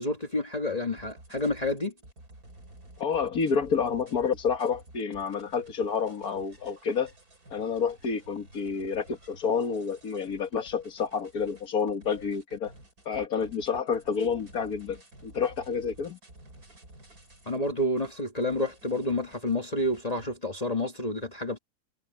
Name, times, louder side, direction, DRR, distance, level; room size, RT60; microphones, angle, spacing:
voice 1, 0.0-1.9 17.5-21.6, left 1 dB, 25° left, 1.6 m, -29 dB
sound 1, 1.0-20.3, right 1 dB, 60° right, 6.7 m, -52 dB
voice 2, 3.0-7.1 7.5-12.7 13.1-16.2, left 6 dB, 65° left, 2.0 m, -29 dB
omnidirectional pair, 1.7 m